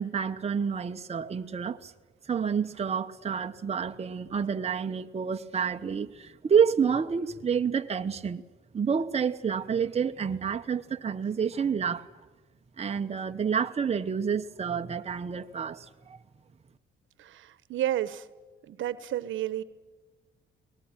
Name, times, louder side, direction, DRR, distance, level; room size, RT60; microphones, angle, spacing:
voice 1, 0.0-1.9 2.3-8.4 8.7-12.0 12.8-16.2, right 6 dB, 30° right, 1.0 m, -29 dB
voice 2, 17.2-18.2 18.7-19.6, right 12 dB, 75° right, 1.1 m, -31 dB
23.0 x 19.5 x 9.0 m
cardioid pair, 90°, 20 cm